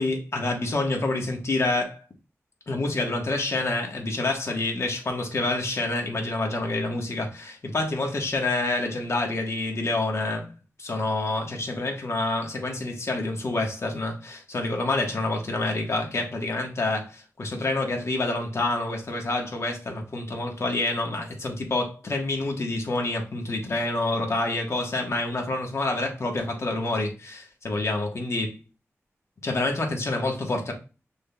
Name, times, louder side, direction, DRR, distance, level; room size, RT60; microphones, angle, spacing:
voice 1, 0.0-2.0 2.7-10.5 10.8-28.6 29.4-30.7, left 2 dB, 65° left, 1.3 m, -27 dB
6.2 x 3.6 x 2.2 m
wide cardioid pair, 80°, 5 cm